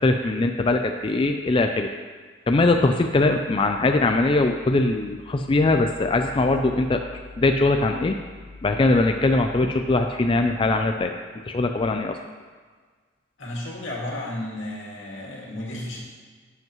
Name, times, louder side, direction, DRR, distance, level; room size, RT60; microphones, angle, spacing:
voice 1, 0.0-1.9 2.5-7.0 7.4-8.2 8.6-11.1 11.5-12.2, left 2 dB, 25° left, 5 dB, 0.3 m, -21 dB
voice 2, 13.4-16.0, left 1 dB, 85° left, -3 dB, 2.1 m, -33 dB
11.0 x 8.0 x 3.1 m, 1.5 s
head